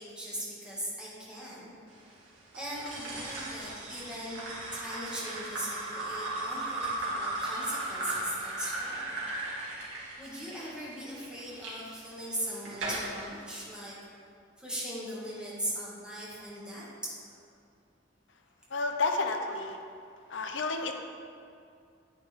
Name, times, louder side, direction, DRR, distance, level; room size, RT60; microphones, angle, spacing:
voice 1, 0.0-1.7 2.5-4.4 4.7-9.1 10.2-14.0 14.6-17.5, equal, 5° right, -8 dB, 2.3 m, -39 dB
sound 1, 2.5-11.7 12.3-13.2, right 2 dB, 85° right, 2.5 m, -36 dB
voice 2, 18.7-19.8 20.3-20.9, left 3 dB, 75° left, 4 dB, 0.8 m, -30 dB
9.6 x 8.9 x 3.7 m, 2.4 s
head